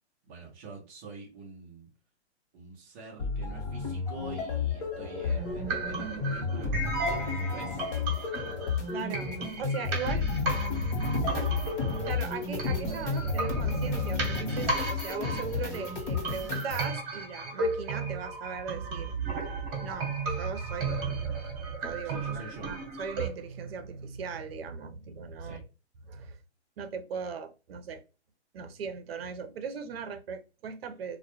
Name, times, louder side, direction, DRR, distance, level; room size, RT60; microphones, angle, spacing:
voice 1, 0.2-1.9 2.5-7.8 22.0-22.7 25.4-25.6, right 4 dB, 15° right, 0.3 m, -45 dB
sound 1, 3.2-16.9, left 5 dB, 50° left, 0.9 m, -32 dB
sound 2, 5.3-23.3, right 3 dB, 30° right, 0.9 m, -34 dB
voice 2, 8.9-10.3 12.1-19.1 19.8-21.3 21.8-25.6 26.1-26.4 26.8-28.0 28.5-31.2, right 6 dB, 60° right, 0.6 m, -39 dB
2.2 x 2.1 x 2.8 m
hypercardioid pair, 140°, 34 cm